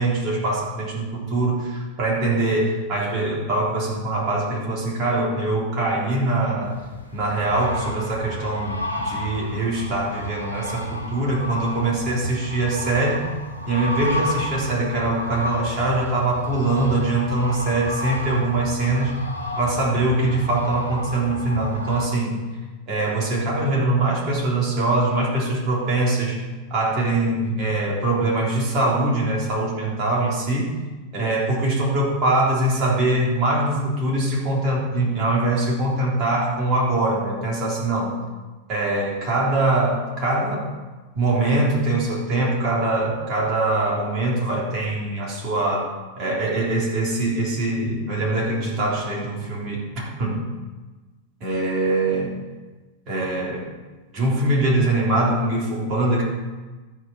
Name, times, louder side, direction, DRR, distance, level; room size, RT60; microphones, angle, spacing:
voice 1, 0.0-6.8 7.1-13.3 13.7-19.2 19.6-22.4 22.9-26.4 26.7-30.7 31.1-38.2 38.7-40.7 41.2-45.9 46.2-50.4 51.4-52.4 53.1-53.7 54.1-56.2, right 2 dB, 35° right, -4 dB, 3.5 m, -23 dB
sound 1, 6.6-22.1, left 1 dB, 85° left, 1.3 m, -32 dB
13.0 x 5.0 x 6.1 m, 1.2 s
figure-of-eight pair, 90°, 0 cm